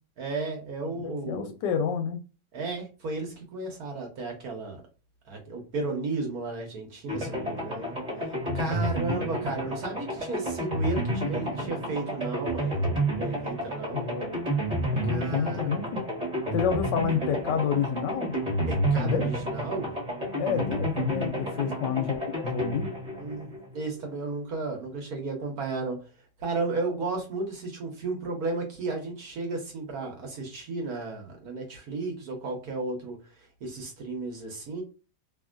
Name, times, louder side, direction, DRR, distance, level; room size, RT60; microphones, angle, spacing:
voice 1, 0.2-1.5 2.5-4.8 5.3-14.1 15.0-15.8 18.7-20.0 21.6-21.7 23.2-26.1 26.4-34.8, right 3 dB, 55° right, 1.3 m, -34 dB
voice 2, 1.0-2.2 8.5-8.8 13.9-14.3 14.9-16.0 16.5-18.3 18.9-19.3 20.4-22.9, left 7 dB, 75° left, 1.1 m, -29 dB
sound 1, 7.1-24.0, right 1 dB, 25° right, 1.2 m, -30 dB
3.0 x 2.6 x 2.4 m
omnidirectional pair, 2.2 m